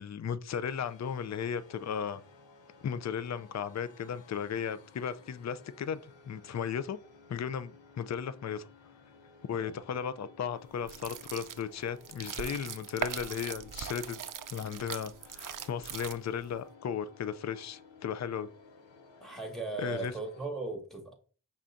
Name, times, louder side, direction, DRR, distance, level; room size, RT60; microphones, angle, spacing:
voice 1, 0.0-2.2 2.8-6.0 6.2-7.0 7.3-8.7 9.5-14.2 14.5-18.5 19.8-20.1, left 7 dB, 40° left, 0.4 m, -35 dB
sound 1, 0.7-20.5, left 4 dB, 85° left, 0.7 m, -57 dB
sound 2, 10.8-16.5, right 8 dB, 50° right, 0.5 m, -40 dB
voice 2, 19.2-21.1, right 3 dB, ahead, 1.7 m, -38 dB
5.6 x 3.6 x 2.6 m
cardioid pair, 50°, 43 cm